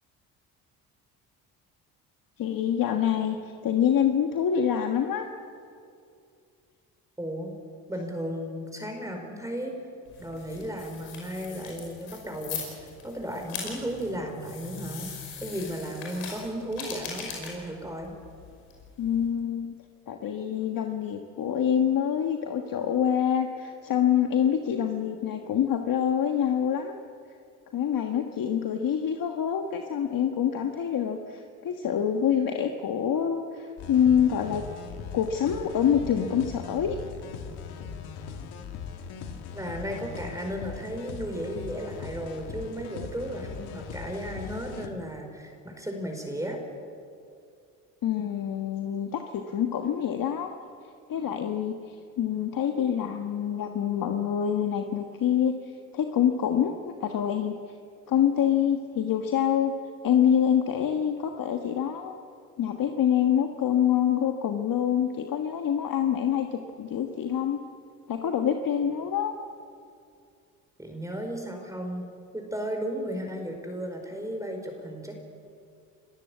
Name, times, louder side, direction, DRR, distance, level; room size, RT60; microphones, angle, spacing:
voice 1, 2.4-3.4 3.6-5.3 19.0-19.7 20.1-26.9 27.7-34.6 35.1-37.0 48.0-50.5 51.1-51.8 52.2-55.5 55.9-57.6 58.1-59.7 60.0-62.1 62.6-67.6 68.1-69.3, left 9 dB, 55° left, 4 dB, 1.6 m, -26 dB
voice 2, 7.2-7.5 7.9-9.8 10.1-18.2 39.5-46.6 70.8-75.2, equal, 10° right, 3 dB, 4.8 m, -35 dB
sound 1, 10.0-19.3, left 5 dB, 90° left, 5.6 m, -41 dB
sound 2, 33.8-44.9, left 6 dB, 75° left, 2.2 m, -40 dB
28.5 x 14.5 x 8.4 m, 2.4 s
supercardioid pair, 65°, 40 cm